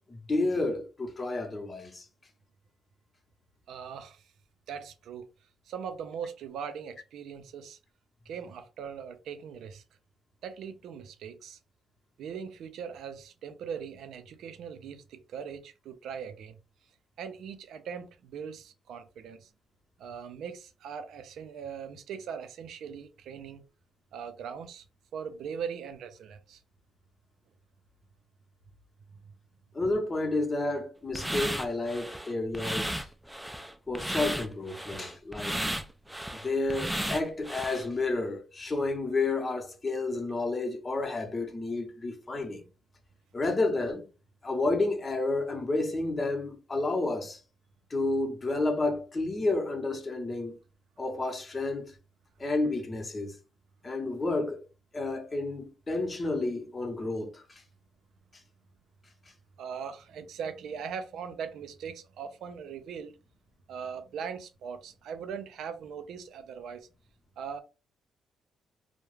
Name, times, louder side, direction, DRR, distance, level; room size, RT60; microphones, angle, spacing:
voice 1, 0.1-2.1 29.7-33.1 33.9-35.6 36.3-42.6 43.3-44.1 44.4-47.4 47.9-50.6 51.0-51.9 52.4-53.4 53.8-54.6 54.9-57.6, left 2 dB, 30° left, 0.7 m, -30 dB
voice 2, 3.7-4.2 4.7-5.3 5.7-7.8 8.3-9.8 10.4-11.6 12.2-16.6 17.2-19.5 20.0-23.6 24.1-24.8 25.1-26.6 59.6-63.1 63.7-66.9 67.4-67.6, right 7 dB, 75° right, 0.4 m, -40 dB
sound 1, 31.1-37.9, equal, 5° right, 0.3 m, -34 dB
2.3 x 2.0 x 3.1 m
cardioid pair, 90°, 0 cm